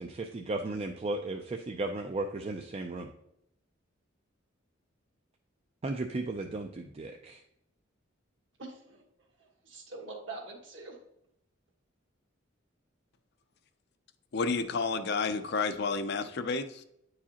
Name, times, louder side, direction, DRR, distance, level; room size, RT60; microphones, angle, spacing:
voice 1, 0.0-3.1 5.8-7.4, right 2 dB, 30° right, 3 dB, 0.4 m, -35 dB
voice 2, 8.6-9.0 9.4-11.0, right 3 dB, 65° right, 0 dB, 1.5 m, -44 dB
voice 3, 14.3-16.8, left 4 dB, 55° left, 10 dB, 0.5 m, -30 dB
9.1 x 4.8 x 2.8 m, 0.79 s
head